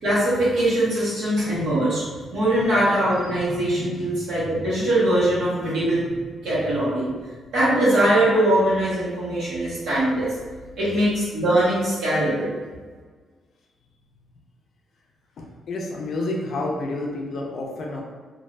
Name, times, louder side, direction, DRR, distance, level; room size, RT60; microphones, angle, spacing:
voice 1, 0.0-7.1 7.5-10.3 10.8-12.5, right 1 dB, 75° right, -10 dB, 1.2 m, -22 dB
voice 2, 15.4-18.0, left 2 dB, 50° left, -1 dB, 0.5 m, -29 dB
2.5 x 2.5 x 3.2 m, 1.5 s
cardioid pair, 165°, 0 cm